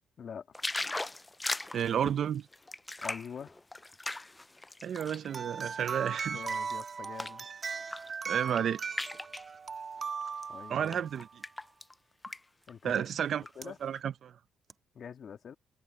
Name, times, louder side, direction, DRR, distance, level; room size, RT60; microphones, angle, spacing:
sound 1, 0.5-5.3 5.8-7.4 7.8-8.1 8.4-9.5 10.3-10.4 10.9-11.9 12.2-12.4 12.7-13.5 13.9-14.0, left 2 dB, 15° left, 0.4 m, -39 dB
voice 1, 1.7-2.5 4.8-6.4 8.2-8.8 10.7-11.3 12.8-14.3, right 9 dB, 60° right, 0.7 m, -31 dB
voice 2, 3.0-3.6 6.3-7.5 10.5-11.1 12.7-13.0 13.5-13.8 14.9-15.5, left 7 dB, 55° left, 1.6 m, -44 dB
sound 2, 5.3-11.3 13.6-13.7 14.7-14.8, right 5 dB, 40° right, 1.6 m, -38 dB
cardioid pair, 90°, 0 cm